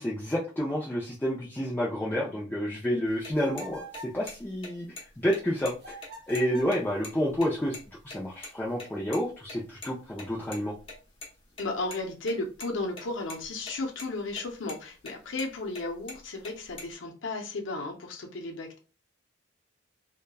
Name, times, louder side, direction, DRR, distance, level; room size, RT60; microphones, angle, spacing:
voice 1, 0.0-6.0 6.3-10.7, equal, 10° left, 0.4 m, -30 dB
sound 1, 3.1-8.2 8.4-8.5 8.8-8.9 9.1-9.2 9.5-9.6 9.8-9.9 10.2-11.3 11.5-12.0 12.3-13.0 13.3-13.7 14.0-14.4 14.7-14.8 15.1-15.5 15.7-16.9, left 2 dB, 30° left, 0.9 m, -42 dB
sound 2, 3.4-4.2 5.8-6.8, right 1 dB, 60° right, 0.6 m, -44 dB
voice 2, 11.6-18.8, left 2 dB, 90° left, 0.6 m, -34 dB
2.9 x 2.2 x 2.3 m
head